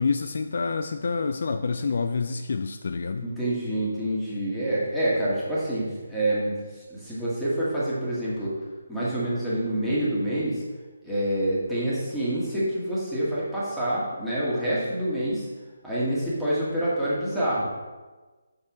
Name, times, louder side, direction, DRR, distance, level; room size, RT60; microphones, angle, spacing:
voice 1, 0.0-3.3, left 4 dB, 50° left, 8 dB, 0.3 m, -27 dB
voice 2, 3.2-8.6 8.9-10.6 11.0-15.5 15.8-17.7, right 1 dB, ahead, -11 dB, 1.9 m, -27 dB
7.2 x 6.1 x 3.1 m, 1.3 s
figure-of-eight pair, 145°, 0 cm